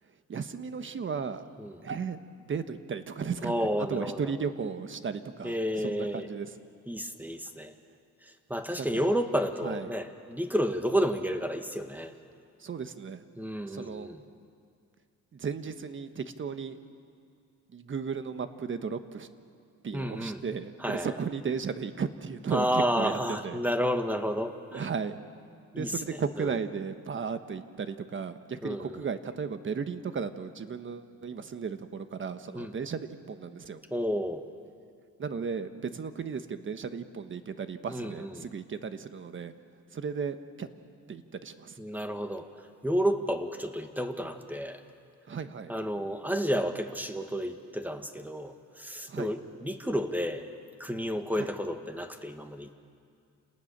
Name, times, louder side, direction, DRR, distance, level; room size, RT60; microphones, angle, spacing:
voice 1, 0.0-1.5 1.8-6.6 8.8-9.1 9.6-9.9 12.6-13.2 13.7-14.1 15.3-16.8 17.7-19.3 19.8-23.6 24.7-25.2 25.7-33.8 35.2-39.5 39.9-40.7 41.1-41.8 45.2-45.7 49.1-49.3 51.3-51.5, right 6 dB, 40° right, 10 dB, 1.3 m, -35 dB
voice 2, 3.4-4.2 5.4-6.3 6.9-7.7 8.2-12.1 13.4-14.2 19.9-20.4 20.8-21.1 22.5-24.8 25.7-25.9 26.4-26.5 28.6-29.0 32.5-32.7 33.9-34.4 37.9-38.3 41.8-42.5 42.8-44.8 45.7-50.5 50.8-52.7, equal, 5° right, 7 dB, 1.6 m, -31 dB
29.5 x 19.0 x 6.8 m, 2.3 s
cardioid pair, 90°, 30 cm